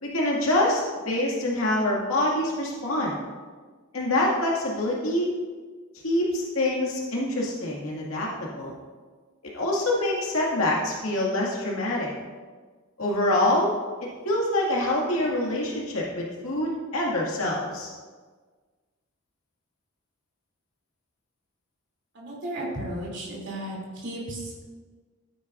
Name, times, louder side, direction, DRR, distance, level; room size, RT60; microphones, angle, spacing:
voice 1, 0.0-3.2 3.9-5.3 6.0-8.7 9.5-12.1 13.0-13.7 14.2-17.9, left 1 dB, 75° left, -3 dB, 2.1 m, -25 dB
voice 2, 22.1-24.7, right 1 dB, 55° right, -4 dB, 3.0 m, -34 dB
13.0 x 9.2 x 2.6 m, 1.4 s
head